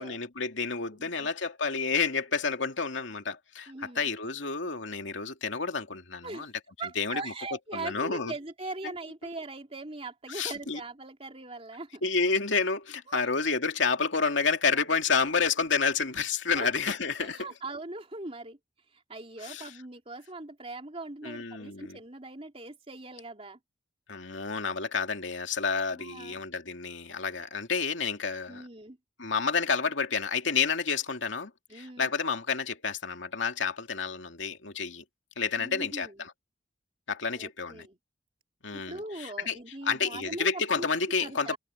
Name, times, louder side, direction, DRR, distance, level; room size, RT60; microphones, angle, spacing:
voice 1, 0.0-6.5 7.0-7.3 7.7-8.3 10.3-10.8 12.0-17.5 19.4-19.7 21.2-22.0 24.1-28.7 29.2-35.0 35.4-36.3 37.1-37.9 38.6-39.6 39.9-41.6, left 5 dB, 80° left, 2.4 m, -30 dB
voice 2, 1.0-1.3 3.7-4.1 6.2-6.5 6.8-12.0 13.1-13.3 16.5-18.6 18.9-23.6 25.9-26.4 28.5-29.0 31.7-32.1 35.6-36.2 37.3-38.0 38.7-40.9 41.2-41.6, right 2 dB, 30° right, 3.5 m, -41 dB
head